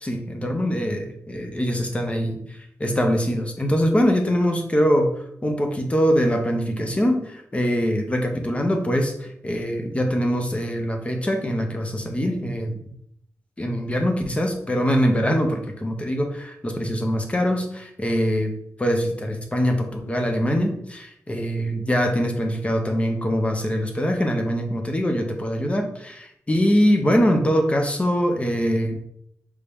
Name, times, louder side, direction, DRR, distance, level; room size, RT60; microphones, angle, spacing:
voice 1, 0.0-2.4 2.8-5.1 5.4-12.8 13.6-18.5 18.8-29.0, equal, 20° left, 4 dB, 0.7 m, -23 dB
4.7 x 2.8 x 3.5 m, 0.71 s
wide cardioid pair, 115°, 6 cm